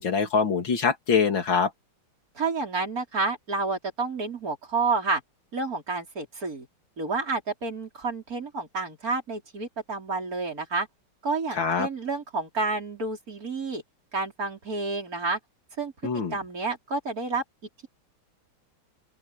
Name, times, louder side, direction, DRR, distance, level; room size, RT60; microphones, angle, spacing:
voice 1, 0.0-1.7 11.5-11.9 16.0-16.4, left 6 dB, 65° left, 3.2 m, -24 dB
voice 2, 2.4-5.2 5.5-6.7 7.0-10.9 11.2-13.8 14.1-15.4 15.8-15.9 16.3-17.4, right 3 dB, 40° right, 5.4 m, -29 dB
open air
omnidirectional pair, 2.3 m